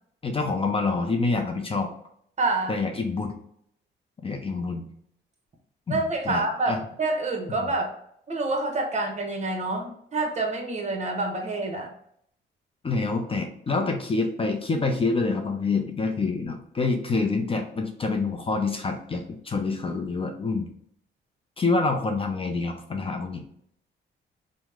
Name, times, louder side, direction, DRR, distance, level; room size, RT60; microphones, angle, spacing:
voice 1, 0.2-1.9 2.7-3.3 4.2-4.9 5.9-6.4 6.7-6.8 7.6-7.7 12.8-20.7 21.6-23.4, left 3 dB, 30° left, 4 dB, 0.5 m, -27 dB
voice 2, 2.4-2.8 5.9-7.9 8.3-11.9, right 2 dB, 35° right, 2 dB, 0.9 m, -27 dB
2.9 x 2.1 x 3.4 m, 0.68 s
cardioid pair, 90°, 20 cm